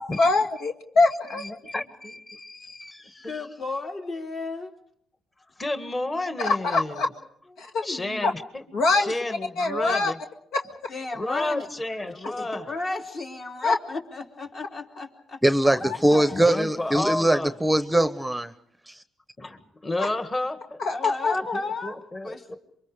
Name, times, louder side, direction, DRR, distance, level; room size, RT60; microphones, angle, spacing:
voice 1, 0.0-1.4 6.4-7.1 7.6-7.8 8.2-8.3 8.7-9.1 9.6-10.1 10.5-10.9 13.6-13.8 20.0-20.1 20.8-21.5, left 3 dB, 80° left, 3 dB, 1.9 m, -23 dB
voice 2, 1.4-3.5 5.6-7.0 7.8-8.6 9.0-10.2 11.2-12.7 16.3-17.5 19.4-20.8 21.3-22.6, left 2 dB, 25° left, 8 dB, 2.0 m, -31 dB
voice 3, 3.3-4.7 7.6-8.3 10.9-11.7 12.0-16.4 20.9-22.0 22.2-22.6, left 3 dB, 45° left, 2 dB, 3.5 m, -34 dB
voice 4, 15.4-18.5 18.9-19.0, right 1 dB, 5° right, 12 dB, 0.9 m, -22 dB
27.5 x 24.0 x 5.1 m, 0.71 s
cardioid pair, 90°, 0 cm